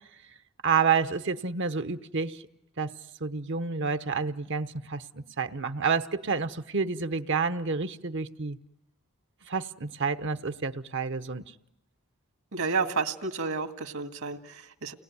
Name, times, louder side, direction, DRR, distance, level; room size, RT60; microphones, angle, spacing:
voice 1, 0.6-2.4 2.8-2.9 3.2-8.6 9.5-11.4, right 5 dB, 55° right, 0.9 m, -29 dB
voice 2, 12.5-14.9, right 4 dB, 70° right, 2.1 m, -31 dB
30.0 x 20.0 x 9.6 m
head